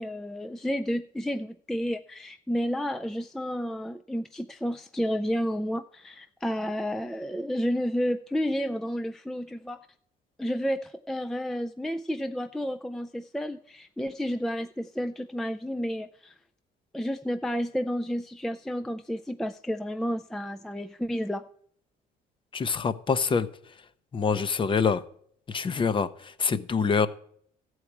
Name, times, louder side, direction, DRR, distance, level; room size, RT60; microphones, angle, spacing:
voice 1, 0.0-9.8 10.4-16.3 16.9-21.5, equal, ahead, 8 dB, 0.4 m, -31 dB
voice 2, 22.5-23.5 24.1-25.0 25.5-27.1, left 5 dB, 30° left, 14 dB, 0.7 m, -25 dB
14.0 x 4.7 x 8.4 m, 0.64 s
cardioid pair, 110°, 17 cm